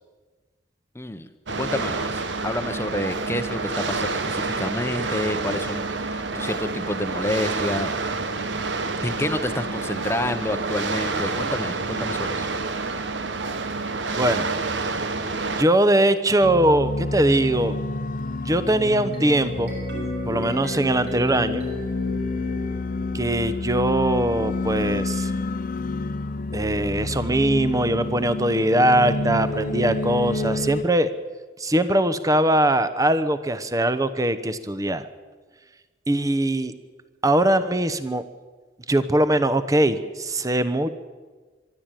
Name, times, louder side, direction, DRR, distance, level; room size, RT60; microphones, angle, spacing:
voice 1, 0.9-1.3 1.6-7.9 9.0-12.5, left 1 dB, 15° left, 8 dB, 0.9 m, -29 dB
sound 1, 1.5-15.6, right 3 dB, 85° right, 1.2 m, -28 dB
voice 2, 14.1-14.5 14.8-15.0 15.6-17.8 18.4-19.7 20.3-21.6 23.1-25.3 26.5-31.1 31.6-35.0 36.1-36.7 37.2-38.2 38.9-40.9, right 1 dB, 20° right, 13 dB, 0.9 m, -21 dB
sound 2, 16.4-30.8, left 2 dB, 50° left, 0.7 m, -29 dB
sound 3, 19.1-23.3, right 1 dB, 65° right, 6.3 m, -36 dB
24.5 x 11.5 x 9.1 m, 1.4 s
head